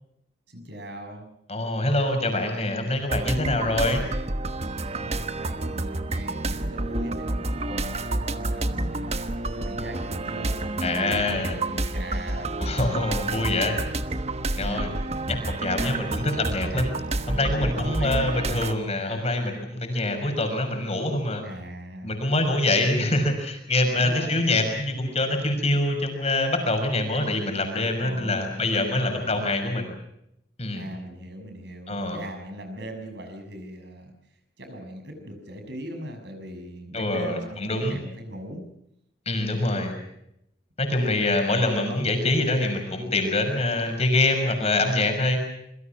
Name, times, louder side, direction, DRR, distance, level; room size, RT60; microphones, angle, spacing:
voice 1, 0.5-1.3 4.8-13.4 14.6-15.0 17.7-18.3 21.4-22.2 23.9-24.4 28.0-28.7 29.0-29.5 30.7-34.1 34.6-38.7 41.4-41.6, right 1 dB, 65° right, 6 dB, 6.5 m, -39 dB
voice 2, 1.5-4.0 10.8-11.5 12.6-13.8 14.5-14.9 15.3-17.0 17.3-21.4 22.0-29.9 30.6-30.9 31.9-32.2 36.9-38.0 39.3-39.9 40.8-45.4, left 2 dB, 35° left, 5 dB, 6.0 m, -25 dB
sound 1, 3.1-18.7, right 2 dB, 35° right, 1.2 m, -29 dB
27.0 x 23.5 x 6.0 m, 0.78 s
head